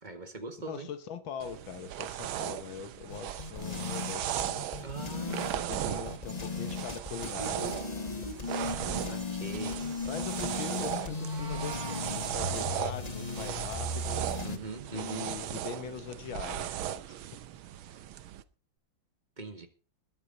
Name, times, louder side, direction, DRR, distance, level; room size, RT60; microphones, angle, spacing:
voice 1, 0.0-0.9 4.8-6.2 8.9-9.9 14.4-15.3 19.4-19.7, right 4 dB, 25° right, 1.6 m, -41 dB
voice 2, 0.7-4.6 5.5-8.1 8.7-9.0 10.1-14.3 14.9-17.2, left 7 dB, 75° left, 1.8 m, -42 dB
sound 1, 1.4-18.4, right 12 dB, 90° right, 1.6 m, -37 dB
sound 2, 3.1-14.6, left 4 dB, 35° left, 0.6 m, -37 dB
Meow, 11.0-12.1, right 6 dB, 50° right, 2.0 m, -45 dB
21.0 x 8.2 x 4.0 m
omnidirectional pair, 2.2 m